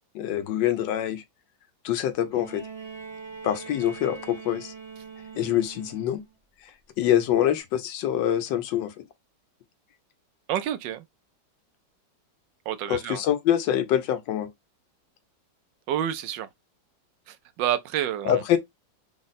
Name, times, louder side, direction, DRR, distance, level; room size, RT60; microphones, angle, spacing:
voice 1, 0.1-1.2 1.8-2.6 3.4-4.7 5.4-6.2 7.0-9.0 12.9-14.5 18.2-18.6, left 11 dB, 85° left, 1.4 m, -25 dB
Bowed string instrument, 2.3-6.3 7.6-7.7, right 5 dB, 35° right, 0.4 m, -42 dB
voice 2, 10.5-11.0 12.7-13.2 15.9-16.5 17.3-18.4, right 11 dB, 90° right, 1.3 m, -29 dB
3.9 x 2.0 x 3.9 m
omnidirectional pair, 1.9 m